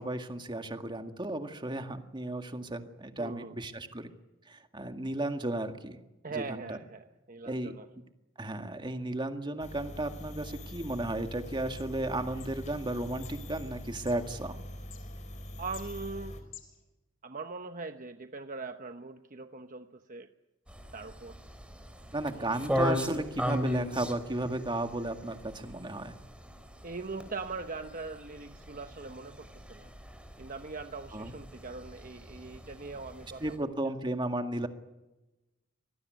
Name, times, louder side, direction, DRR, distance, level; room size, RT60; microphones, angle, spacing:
voice 1, 0.0-4.1 4.5-6.0 6.4-6.8 7.5-7.7 8.4-14.6 22.1-26.2 31.1-31.3 33.4-34.7, right 1 dB, 25° right, 6 dB, 1.9 m, -34 dB
voice 2, 3.2-3.5 6.2-7.9 15.6-16.4 17.2-20.3 20.9-21.4 22.3-22.6 26.8-29.9 30.4-33.9, right 4 dB, 45° right, 7 dB, 1.0 m, -41 dB
sound 1, 9.6-16.4, equal, 40° left, 4.2 m, -43 dB
sound 2, 11.8-16.8, left 11 dB, 70° left, 5.8 m, -54 dB
sound 3, 20.7-33.6, equal, 5° right, 3.6 m, -38 dB
25.5 x 19.5 x 9.3 m, 1.1 s
head